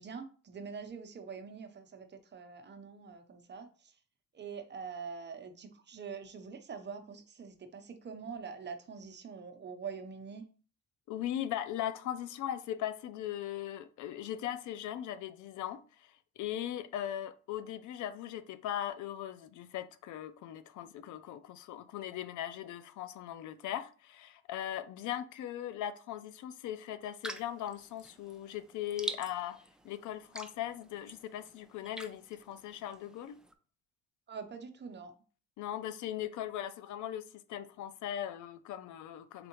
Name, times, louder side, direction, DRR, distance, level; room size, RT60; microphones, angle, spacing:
voice 1, 0.0-3.7 4.3-10.4 34.3-35.1, right 5 dB, 35° right, 0.7 m, -44 dB
voice 2, 11.1-33.4 35.6-37.2 37.5-39.5, left 11 dB, 75° left, 0.5 m, -39 dB
sound 1, 27.2-33.5, right 1 dB, 5° right, 0.3 m, -46 dB
3.6 x 3.5 x 3.0 m
cardioid pair, 90°, 30 cm